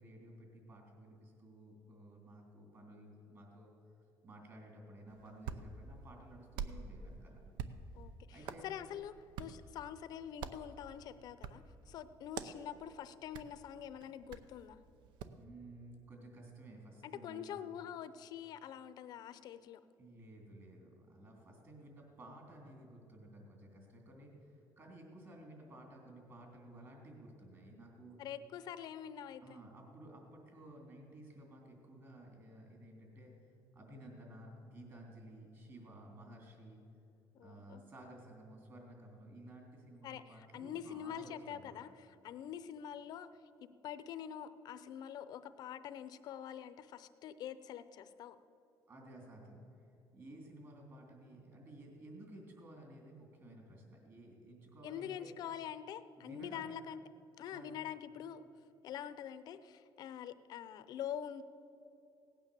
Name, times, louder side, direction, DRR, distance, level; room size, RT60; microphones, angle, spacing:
voice 1, 0.0-3.7 4.2-7.4 8.3-8.7 15.3-17.6 20.0-28.2 29.4-33.3 33.7-36.8 37.4-41.8 48.9-49.9 50.1-55.3 56.2-56.7 57.5-57.9, right 1 dB, 35° right, 0 dB, 3.1 m, -54 dB
Hands, 5.1-15.4, right 6 dB, 75° right, 0.7 m, -48 dB
voice 2, 7.9-14.8 17.0-19.8 28.2-29.6 37.3-37.8 40.0-43.3 43.6-48.4 54.8-57.0 57.4-58.5 58.8-61.4, left 9 dB, 55° left, 13 dB, 0.6 m, -45 dB
17.0 x 9.0 x 6.9 m, 2.8 s
cardioid pair, 145°, 8 cm